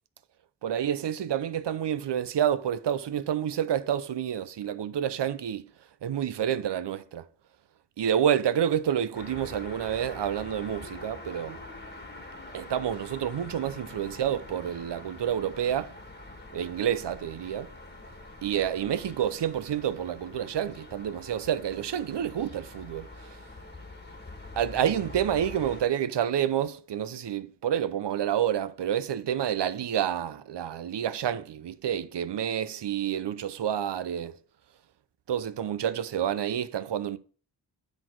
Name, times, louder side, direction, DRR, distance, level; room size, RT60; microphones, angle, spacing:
voice 1, 0.6-5.6 6.0-7.2 8.0-11.6 12.5-15.9 16.5-17.7 18.4-23.1 24.6-34.3 35.3-37.2, right 9 dB, 75° right, 0.7 m, -29 dB
sound 1, 9.1-25.8, left 2 dB, 25° left, 1.5 m, -45 dB
9.9 x 4.2 x 4.5 m
wide cardioid pair, 75°, 42 cm